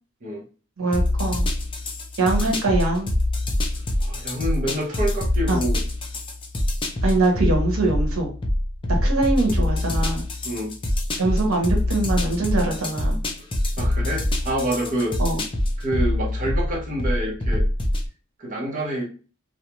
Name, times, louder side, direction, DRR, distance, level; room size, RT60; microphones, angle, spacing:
voice 1, 0.8-1.5 2.2-3.1 5.5-5.6 7.0-8.3 9.0-10.2 11.2-13.2 15.2-15.4, right 2 dB, 85° right, 1 dB, 0.8 m, -23 dB
sound 1, 0.9-18.1, left 1 dB, 25° left, 0.5 m, -25 dB
voice 2, 4.0-5.8 10.4-10.8 13.8-15.2 15.8-17.7 18.4-19.1, right 1 dB, 40° right, -3 dB, 0.8 m, -27 dB
2.5 x 2.1 x 2.9 m, 0.37 s
head